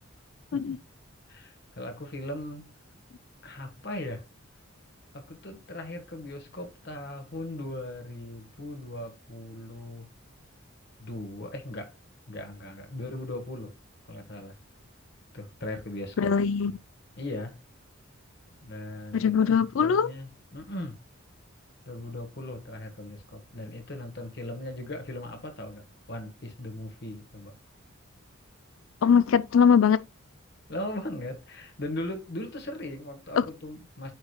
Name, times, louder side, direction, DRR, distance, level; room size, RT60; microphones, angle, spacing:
voice 1, 1.3-2.7 3.4-4.3 5.1-10.1 11.0-11.9 12.3-13.7 14.0-14.5 15.3-16.3 17.2-17.6 18.6-21.0 21.8-25.8 26.1-27.5 30.7-34.1, left 1 dB, 50° left, 1.4 m, -38 dB
voice 2, 16.2-16.7 19.1-20.1 29.0-30.0 33.4-33.5, left 6 dB, 70° left, 0.4 m, -21 dB
9.3 x 5.0 x 2.2 m
head